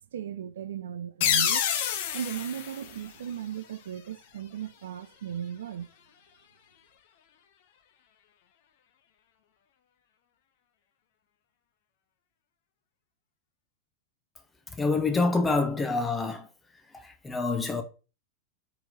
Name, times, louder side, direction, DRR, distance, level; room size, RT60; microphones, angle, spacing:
voice 1, 0.1-1.6 2.1-5.9, right 9 dB, 60° right, 0.3 m, -36 dB
sound 1, 1.2-3.8, left 9 dB, 50° left, 0.6 m, -28 dB
voice 2, 14.8-16.5 17.0-17.8, left 3 dB, 10° left, 0.7 m, -26 dB
4.5 x 3.7 x 2.7 m
figure-of-eight pair, 90°, 0 cm